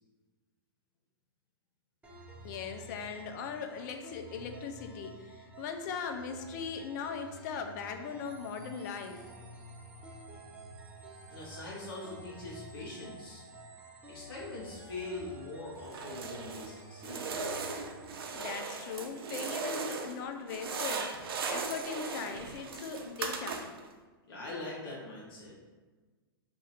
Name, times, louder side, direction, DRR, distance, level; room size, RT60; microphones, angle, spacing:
sound 1, 2.0-18.0, right 1 dB, 10° right, 0.7 m, -51 dB
voice 1, 2.4-9.2 18.3-21.2 21.5-23.6, left 6 dB, 50° left, 6 dB, 0.5 m, -39 dB
sound 2, 8.1-20.3, right 4 dB, 35° right, 0.9 m, -58 dB
voice 2, 11.3-13.4 14.1-17.3 24.3-25.6, left 2 dB, 70° left, -5 dB, 0.9 m, -42 dB
sound 3, 15.9-16.7 17.0-20.2 20.5-23.9, right 4 dB, 75° right, 0.5 m, -37 dB
2.6 x 2.5 x 4.2 m, 1.4 s
hypercardioid pair, 120°, 12 cm